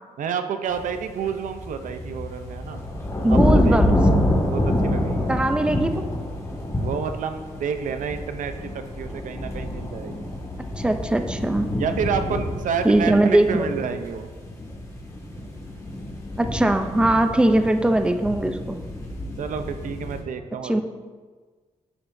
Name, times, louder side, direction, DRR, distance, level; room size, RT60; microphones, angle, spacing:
voice 1, 0.2-2.8 3.3-3.8 4.5-5.4 6.8-10.3 11.8-14.3 19.4-20.8, right 6 dB, 85° right, 8 dB, 0.6 m, -29 dB
sound 1, 0.7-20.2, left 1 dB, 25° left, 1.9 m, -27 dB
voice 2, 3.2-4.0 5.3-5.9 10.8-11.7 12.8-13.7 16.4-18.9 20.6-20.8, right 1 dB, 5° right, 7 dB, 0.5 m, -20 dB
10.0 x 8.3 x 2.7 m, 1.4 s
cardioid pair, 110°, 13 cm